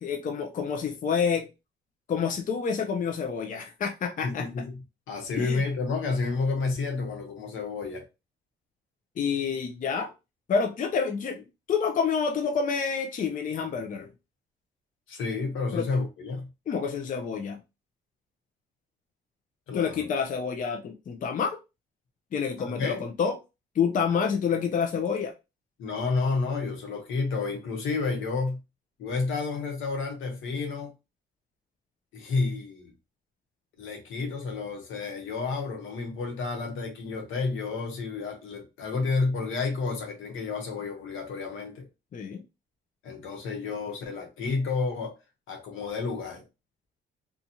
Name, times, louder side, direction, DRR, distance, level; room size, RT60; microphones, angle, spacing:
voice 1, 0.0-1.5 2.1-4.5 5.4-5.6 9.2-10.1 10.5-14.1 15.7-15.9 16.7-17.6 19.7-21.6 22.3-23.4 23.7-25.3 42.1-42.4, left 6 dB, 40° left, 0.5 m, -28 dB
voice 2, 4.2-4.8 5.1-8.0 15.1-16.5 19.7-20.1 22.6-23.0 25.8-28.6 29.0-30.9 32.1-32.9 33.8-41.9 43.0-45.1 45.5-46.4, left 4 dB, 80° left, 1.0 m, -30 dB
2.6 x 2.4 x 2.8 m
cardioid pair, 90°, 20 cm